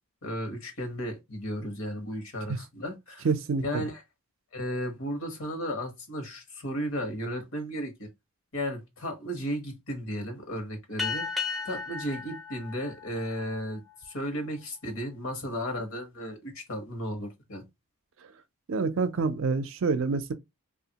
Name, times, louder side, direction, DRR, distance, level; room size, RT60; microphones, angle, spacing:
voice 1, 0.2-3.3 3.6-4.0 4.5-8.1 8.5-11.3 11.6-17.6, equal, 65° left, 1.1 m, -34 dB
voice 2, 3.2-3.8 18.7-20.3, right 4 dB, 65° right, 0.5 m, -27 dB
sound 1, 11.0-13.9, left 4 dB, ahead, 0.5 m, -35 dB
2.8 x 2.4 x 2.7 m
head